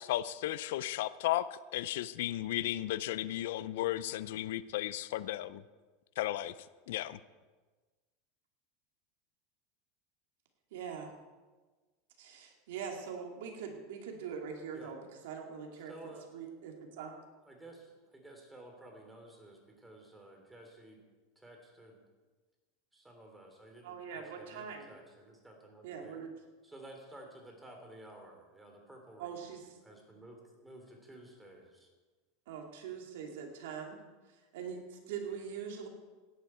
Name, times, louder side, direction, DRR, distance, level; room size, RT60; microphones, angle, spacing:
voice 1, 0.0-1.5 1.7-5.6 6.2-6.5 6.9-7.2, left 14 dB, 75° left, 16 dB, 0.5 m, -34 dB
voice 2, 10.7-11.1 12.2-15.9 16.3-17.1 23.8-24.9 25.8-26.3 29.2-29.6 32.5-34.0 34.5-35.9, right 7 dB, 75° right, 2 dB, 2.5 m, -42 dB
voice 3, 15.7-16.3 17.4-21.0 21.3-22.0 22.9-26.2 26.6-29.5 29.8-31.9, right 1 dB, 10° right, 2 dB, 3.3 m, -53 dB
16.5 x 11.0 x 4.5 m, 1.3 s
supercardioid pair, 125°, 0 cm